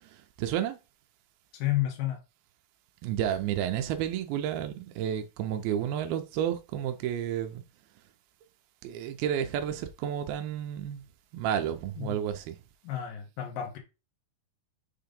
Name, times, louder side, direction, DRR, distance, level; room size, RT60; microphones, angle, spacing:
voice 1, 0.4-0.8 3.0-7.6 8.8-11.0 11.3-12.6, right 10 dB, 90° right, 2.1 m, -31 dB
voice 2, 1.5-2.2 12.0-12.2 12.8-13.8, left 13 dB, 70° left, 2.2 m, -31 dB
6.5 x 2.8 x 5.2 m
omnidirectional pair, 5.1 m